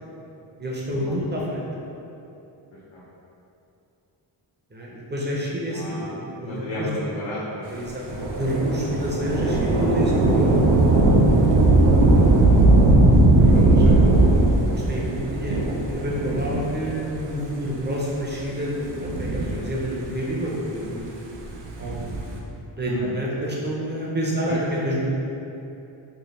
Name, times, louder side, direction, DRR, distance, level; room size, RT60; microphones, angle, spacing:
voice 1, 0.6-1.6 4.7-6.9 7.7-10.6 14.7-15.6 15.9-21.1 21.8-22.1 22.8-25.1, equal, 25° right, -4 dB, 0.5 m, -28 dB
voice 2, 5.7-6.0 6.4-7.9 11.4-11.5 13.4-14.1 19.5-19.6 22.8-23.1 24.4-24.6, left 1 dB, 65° left, -9 dB, 0.7 m, -33 dB
Thunder / Rain, 8.1-17.0 17.8-17.9 18.8-20.1 21.6-22.4, right 2 dB, 70° right, 0.5 m, -18 dB
3.1 x 2.2 x 4.0 m, 2.8 s
wide cardioid pair, 135°, 47 cm